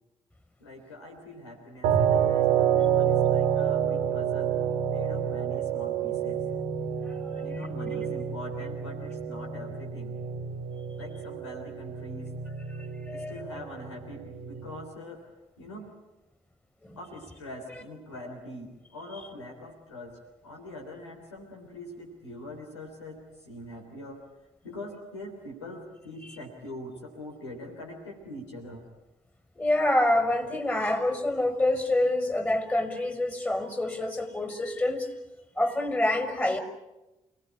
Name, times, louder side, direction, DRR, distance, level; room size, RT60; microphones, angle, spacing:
voice 1, 0.6-4.6 4.9-6.4 7.4-10.2 11.0-12.3 13.1-15.3 15.6-15.9 16.9-20.2 20.4-24.2 24.6-28.8, left 1 dB, 85° left, 2 dB, 3.3 m, -43 dB
sound 1, 1.8-14.8, right 8 dB, 75° right, 1.8 m, -28 dB
voice 2, 12.7-13.6 16.8-17.0 29.6-35.1 35.6-36.6, left 1 dB, 15° left, 7 dB, 5.8 m, -27 dB
29.0 x 18.5 x 9.8 m, 1.0 s
figure-of-eight pair, 40°, 14 cm